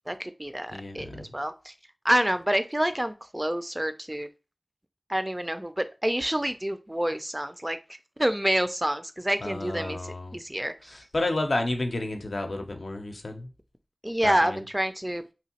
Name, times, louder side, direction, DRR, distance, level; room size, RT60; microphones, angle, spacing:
voice 1, 0.1-1.7 2.0-4.3 5.1-7.8 8.2-11.0 14.0-15.2, right 1 dB, 20° right, 0.4 m, -28 dB
voice 2, 0.7-1.3 9.4-10.4 10.9-13.5 14.2-14.6, left 2 dB, 85° left, 0.5 m, -31 dB
2.9 x 2.6 x 2.8 m
wide cardioid pair, 45°, 0 cm